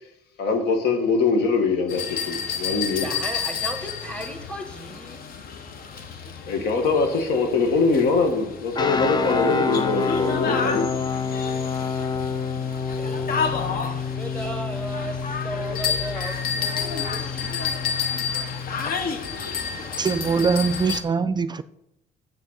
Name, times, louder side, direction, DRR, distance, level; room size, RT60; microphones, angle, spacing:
voice 1, 0.4-3.1 6.1-10.9, left 4 dB, 80° left, 1.9 m, -23 dB
sound 1, 1.9-21.0, left 6 dB, 60° left, 1.3 m, -31 dB
voice 2, 3.0-5.3 12.9-17.6, right 1 dB, 5° left, 1.6 m, -36 dB
sound 2, 8.7-18.9, left 5 dB, 25° left, 0.7 m, -28 dB
voice 3, 20.0-21.6, right 5 dB, 25° right, 0.4 m, -23 dB
7.5 x 6.2 x 6.4 m
cardioid pair, 110°, 17 cm